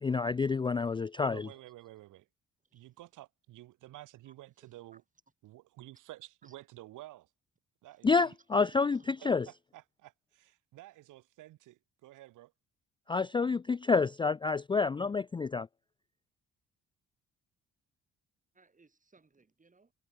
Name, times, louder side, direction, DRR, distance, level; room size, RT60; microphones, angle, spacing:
voice 1, 0.0-1.5 8.0-9.0 9.3-9.5 13.1-15.7, left 4 dB, 15° left, 0.4 m, -28 dB
voice 2, 1.2-2.3 2.7-5.0 5.4-7.3 7.8-8.3 9.5-12.5, right 16 dB, 90° right, 2.3 m, -51 dB
voice 3, 7.8-8.2 8.5-9.2 18.5-19.9, right 4 dB, 25° right, 6.9 m, -60 dB
cardioid pair, 90°, 30 cm